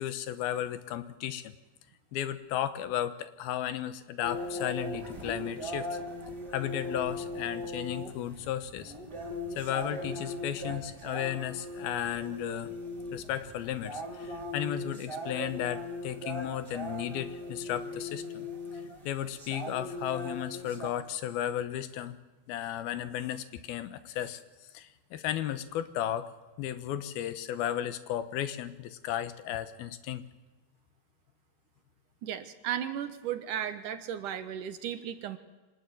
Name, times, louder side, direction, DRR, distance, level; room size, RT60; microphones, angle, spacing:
voice 1, 0.0-1.5 2.1-6.0 6.5-8.9 9.6-12.7 13.1-18.5 19.1-22.2 22.5-24.4 24.7-26.3 26.6-30.2, left 11 dB, 85° left, 12 dB, 3.0 m, -34 dB
sound 1, 4.2-20.9, left 1 dB, 25° right, 4.3 m, -39 dB
voice 2, 32.2-35.4, right 10 dB, 70° right, 10 dB, 2.4 m, -35 dB
25.5 x 19.5 x 9.3 m, 1.2 s
omnidirectional pair, 4.3 m